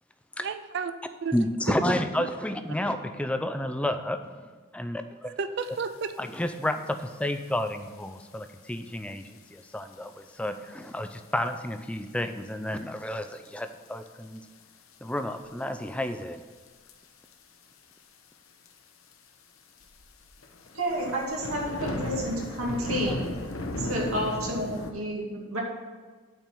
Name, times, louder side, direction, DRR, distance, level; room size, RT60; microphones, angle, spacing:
voice 1, 0.4-1.5 2.2-2.3 5.2-6.1, right 5 dB, 55° right, 10 dB, 0.4 m, -33 dB
voice 2, 1.3-4.2 4.7-5.4 6.2-14.4 15.0-16.4, left 1 dB, 5° left, 8 dB, 0.4 m, -31 dB
sound 1, 6.3-6.4 6.6-7.0 7.7-7.8 8.5-8.6 9.2-9.3 9.6-9.7 9.9-10.0 11.1-11.4 11.8-11.9 12.8-12.9 13.4-13.9 14.2-14.4 14.9-15.6 16.7-16.9 17.2-17.3 17.6-17.7 17.9-18.0 18.6-18.7 19.1-19.2 19.8-24.9, left 1 dB, 75° left, 0.9 m, -35 dB
voice 3, 20.7-23.3 23.8-25.6, equal, 85° right, -4 dB, 2.3 m, -30 dB
8.9 x 4.6 x 7.3 m, 1.4 s
head